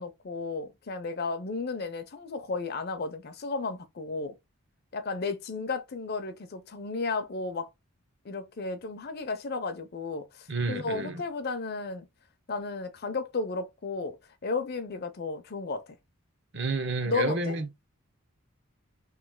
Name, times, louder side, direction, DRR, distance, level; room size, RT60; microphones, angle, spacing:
voice 1, 0.0-4.3 4.9-7.7 8.2-12.1 12.5-14.2 14.4-16.0 17.1-17.6, left 3 dB, 45° left, 0.5 m, -33 dB
voice 2, 10.5-11.2 16.5-17.7, right 3 dB, 55° right, 0.8 m, -30 dB
3.1 x 2.8 x 3.6 m
head